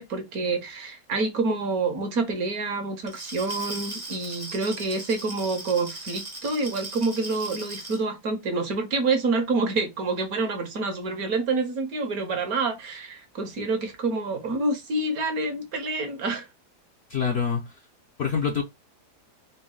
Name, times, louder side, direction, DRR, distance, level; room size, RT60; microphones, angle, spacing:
voice 1, 0.0-16.5, right 3 dB, 65° right, 1.3 m, -27 dB
Glass, 3.0-8.0, right 2 dB, 25° right, 0.5 m, -38 dB
voice 2, 17.1-17.8 18.2-18.6, left 6 dB, 55° left, 0.7 m, -25 dB
4.1 x 2.2 x 3.8 m
omnidirectional pair, 1.8 m